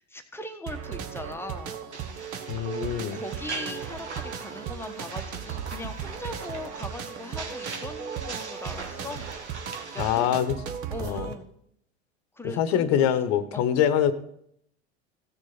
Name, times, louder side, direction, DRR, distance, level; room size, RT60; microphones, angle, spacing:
voice 1, 0.0-1.8 3.1-9.3 9.9-10.3 10.9-11.5 12.3-13.1 13.5-13.7, left 2 dB, 5° left, 6 dB, 1.2 m, -40 dB
sound 1, 0.7-11.3, right 8 dB, 40° right, 1.2 m, -37 dB
sound 2, 1.9-10.4, right 4 dB, 85° right, 1.4 m, -41 dB
voice 2, 2.5-3.2 10.0-10.6 11.0-11.3 12.4-14.1, left 9 dB, 50° left, 13 dB, 1.1 m, -24 dB
16.0 x 6.4 x 4.1 m, 0.71 s
hypercardioid pair, 80°, 34 cm